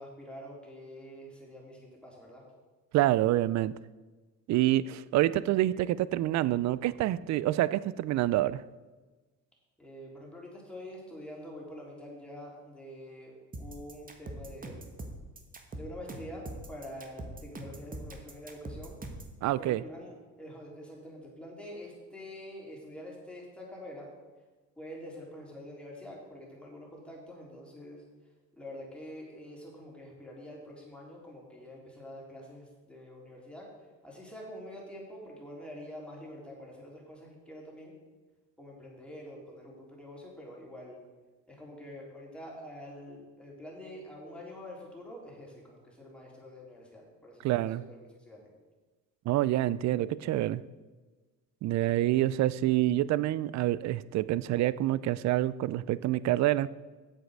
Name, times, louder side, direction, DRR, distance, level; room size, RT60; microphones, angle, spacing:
voice 1, 0.0-2.4 9.8-14.9 15.7-19.0 19.6-24.1 24.8-28.0 28.5-33.7 34.0-38.0 38.6-41.0 41.5-48.5, equal, 5° left, -3 dB, 3.8 m, -46 dB
voice 2, 2.9-3.7 4.5-8.6 19.4-19.8 47.4-47.8 49.3-50.6 51.6-56.7, right 14 dB, 55° right, 18 dB, 0.5 m, -27 dB
sound 1, 13.5-19.3, right 1 dB, 25° right, 1.5 m, -42 dB
8.1 x 7.6 x 6.5 m, 1.3 s
supercardioid pair, 90°, 33 cm